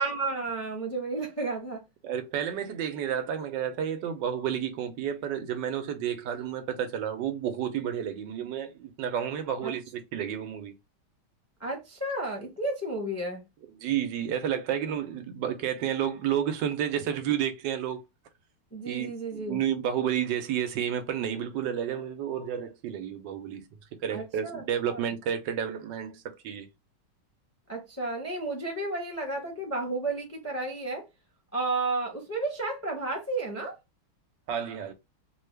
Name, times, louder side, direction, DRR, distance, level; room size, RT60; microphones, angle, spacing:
voice 1, 0.0-1.8 9.6-9.7 11.6-13.4 18.7-19.6 24.1-25.0 27.7-31.0 31.5-33.7, right 2 dB, 15° left, 0.6 m, -32 dB
voice 2, 2.0-10.7 13.8-18.0 18.9-23.7 24.0-26.7 34.5-34.9, right 9 dB, 90° right, 1.3 m, -31 dB
3.3 x 2.2 x 3.2 m
omnidirectional pair, 1.9 m